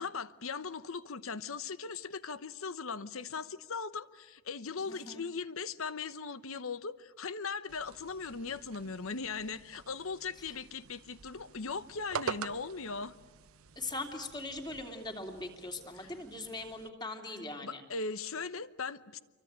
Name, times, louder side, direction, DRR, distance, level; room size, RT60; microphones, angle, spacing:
voice 1, 0.0-13.1 15.9-16.1 17.6-19.2, left 4 dB, 70° left, 0.9 m, -39 dB
voice 2, 4.9-5.2 13.8-17.8, left 2 dB, 20° left, 2.8 m, -41 dB
sound 1, 7.7-16.9, right 5 dB, 75° right, 0.8 m, -46 dB
28.0 x 24.0 x 8.9 m
head